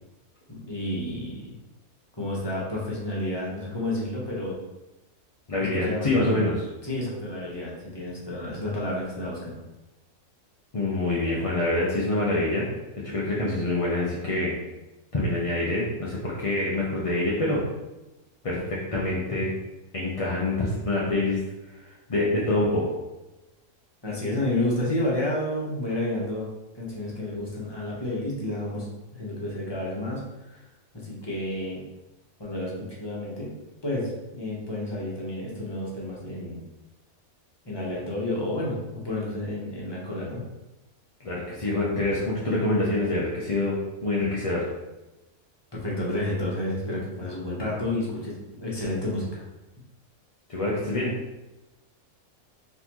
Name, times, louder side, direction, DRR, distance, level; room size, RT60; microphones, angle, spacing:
voice 1, 0.5-1.5 2.2-4.5 5.6-6.4 6.8-9.6 24.0-26.5 26.7-28.9 29.2-30.6 30.9-31.8 32.4-33.5 33.8-36.6 37.6-40.4 45.7-49.4, left 1 dB, 20° left, -5 dB, 1.0 m, -30 dB
voice 2, 5.5-6.6 10.7-12.6 13.0-14.5 15.1-17.6 18.4-19.5 19.9-21.4 21.7-22.8 41.2-44.6 50.5-51.1, left 2 dB, 40° left, -5 dB, 0.5 m, -26 dB
4.1 x 4.0 x 3.0 m, 1.0 s
omnidirectional pair, 1.5 m